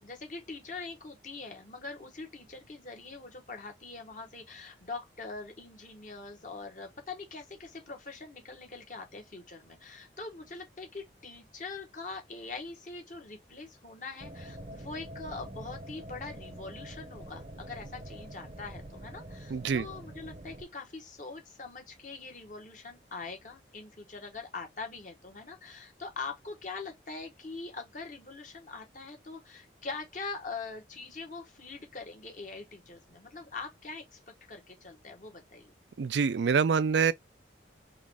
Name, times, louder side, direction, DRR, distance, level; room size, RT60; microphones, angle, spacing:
voice 1, 0.0-34.2 34.5-35.7, left 4 dB, 45° left, 1.3 m, -43 dB
sound 1, 14.2-20.6, right 1 dB, 35° right, 0.7 m, -45 dB
voice 2, 19.5-19.8 36.0-37.1, right 6 dB, 75° right, 0.4 m, -25 dB
3.8 x 3.1 x 3.4 m
head